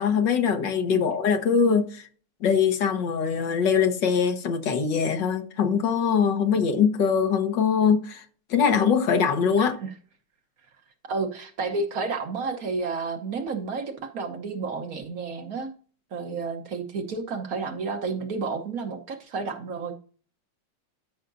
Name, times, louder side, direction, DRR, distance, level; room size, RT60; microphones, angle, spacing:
voice 1, 0.0-2.1 2.4-8.2 8.5-9.7, left 6 dB, 75° left, 1.7 m, -22 dB
voice 2, 9.6-9.9 11.1-15.7 16.1-19.9, right 4 dB, 55° right, 1.2 m, -31 dB
13.0 x 5.6 x 2.6 m
omnidirectional pair, 2.0 m